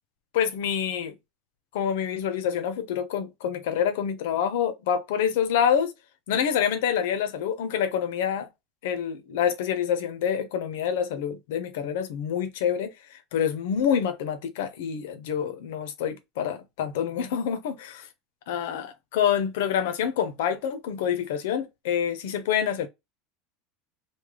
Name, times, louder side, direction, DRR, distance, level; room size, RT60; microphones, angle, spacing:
voice 1, 0.3-1.2 1.7-5.9 6.3-8.5 8.8-18.1 18.5-22.9, left 8 dB, 80° left, 0.7 m, -27 dB
3.3 x 2.2 x 3.5 m
supercardioid pair, 170°, 0 cm